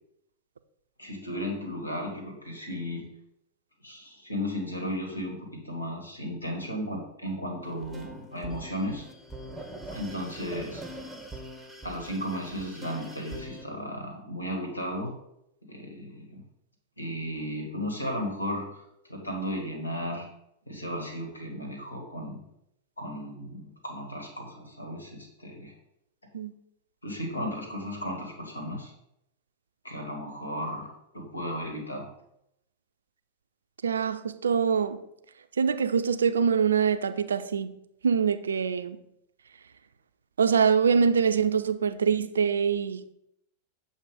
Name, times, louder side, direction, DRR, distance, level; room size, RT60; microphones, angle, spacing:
voice 1, 1.0-3.1 3.8-9.0 9.9-10.8 11.8-15.1 15.7-16.4 17.0-20.3 20.7-22.4 23.0-25.7 27.0-28.9 29.8-32.1, equal, 90° left, 1.6 m, -35 dB
sound 1, 7.6-13.6, right 1 dB, ahead, 0.9 m, -43 dB
voice 2, 33.8-35.0 35.6-37.7 38.0-39.0 40.4-43.1, right 6 dB, 75° right, 0.4 m, -24 dB
7.5 x 2.6 x 4.9 m
figure-of-eight pair, 95°, 0 cm